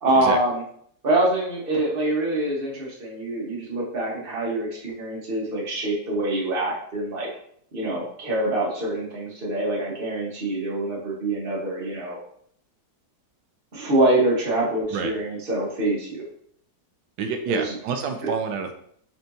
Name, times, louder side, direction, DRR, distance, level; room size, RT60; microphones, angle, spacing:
voice 1, 0.0-0.6 1.0-7.3 7.7-12.2 13.7-16.2 17.5-17.6, right 1 dB, 35° right, -4 dB, 1.5 m, -25 dB
voice 2, 17.2-18.7, right 6 dB, 90° right, 5 dB, 1.3 m, -28 dB
4.4 x 4.4 x 2.7 m, 0.65 s
omnidirectional pair, 1.9 m